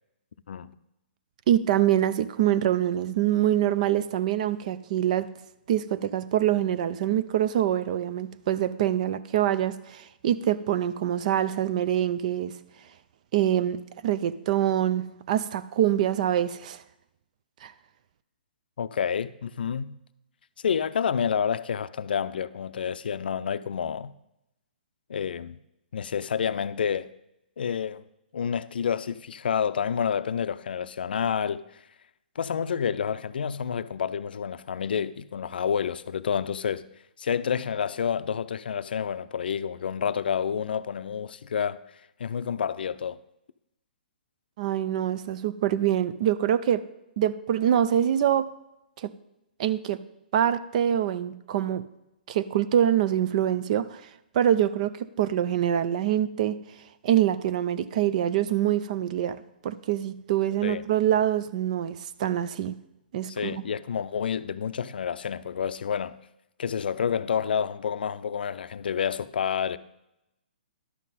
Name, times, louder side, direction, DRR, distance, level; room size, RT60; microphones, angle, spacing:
voice 1, 1.5-5.3 5.7-12.5 13.3-16.8 17.6-17.7 44.6-46.8 47.2-48.5 49.0-49.1 49.6-50.0 50.3-51.8 52.3-54.0 54.3-54.9 55.2-56.6 57.0-59.4 59.6-62.7 63.1-63.6, right 11 dB, 45° right, 0.5 m, -25 dB
voice 2, 18.8-20.0 20.6-24.1 25.1-25.6 25.9-27.1 27.6-28.0 28.3-31.6 32.4-36.8 37.2-41.8 42.2-43.2 60.6-60.8 63.3-66.1 66.6-69.8, left 7 dB, 75° left, 0.4 m, -29 dB
11.5 x 7.4 x 4.1 m
hypercardioid pair, 140°, 5 cm